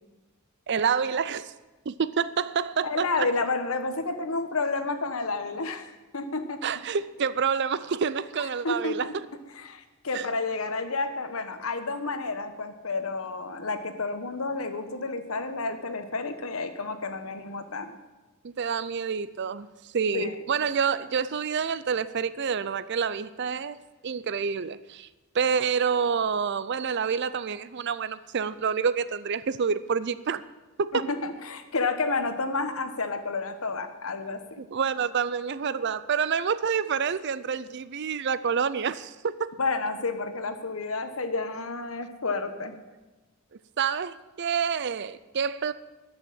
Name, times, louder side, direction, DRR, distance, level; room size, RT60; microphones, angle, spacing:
voice 1, 0.7-1.5 1.9-3.3 6.6-9.1 10.1-10.3 18.4-23.8 24.0-25.1 25.3-30.4 30.8-31.0 34.6-39.6 43.8-45.7, right 6 dB, 55° right, 0.5 m, -28 dB
voice 2, 2.8-6.6 8.6-9.1 9.5-18.0 20.1-20.4 30.9-34.6 39.6-42.7, left 3 dB, 75° left, 1.2 m, -30 dB
13.5 x 6.4 x 8.8 m
head